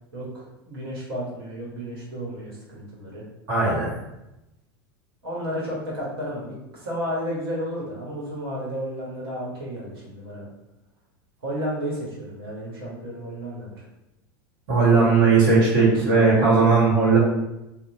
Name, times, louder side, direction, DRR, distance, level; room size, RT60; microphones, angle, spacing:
voice 1, 0.1-3.2 5.2-10.5 11.4-13.8, equal, 85° right, -5 dB, 1.1 m, -32 dB
voice 2, 3.5-3.9 14.7-17.2, right 4 dB, 65° right, -6 dB, 1.4 m, -17 dB
2.8 x 2.0 x 2.7 m, 0.94 s
hypercardioid pair, 105°, 12 cm